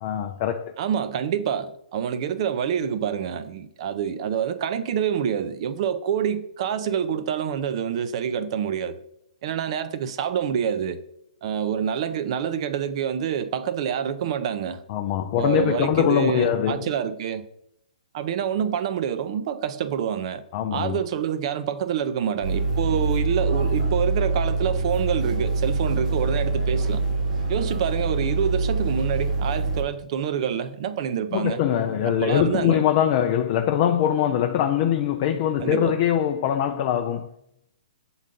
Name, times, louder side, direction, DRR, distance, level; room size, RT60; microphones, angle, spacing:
voice 1, 0.0-0.8 14.9-16.9 20.5-21.0 31.3-37.3, left 10 dB, 40° left, 0.4 m, -22 dB
voice 2, 0.8-9.0 9.4-11.0 11.4-14.8 15.4-17.5 18.1-20.4 20.7-27.0 27.5-31.6 32.0-32.8 35.6-36.0, right 8 dB, 50° right, 0.6 m, -27 dB
sound 1, 22.4-29.8, right 3 dB, 75° right, 1.4 m, -25 dB
7.2 x 3.9 x 3.7 m
hypercardioid pair, 135°, 4 cm